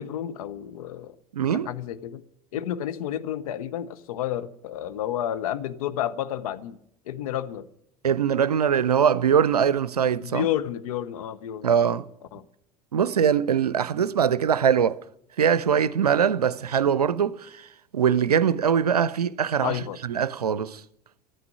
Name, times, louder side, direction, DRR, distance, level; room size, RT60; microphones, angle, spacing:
voice 1, 0.0-1.1 1.5-2.2 2.5-6.8 7.1-7.7 10.2-12.0 12.3-12.5 19.6-20.0, left 11 dB, 65° left, 0.8 m, -31 dB
voice 2, 1.3-1.7 8.0-10.5 11.6-12.1 12.9-15.0 15.4-17.7 17.9-19.7 20.0-20.8, right 8 dB, 80° right, 0.5 m, -22 dB
13.5 x 9.6 x 9.5 m
figure-of-eight pair, 70°, 19 cm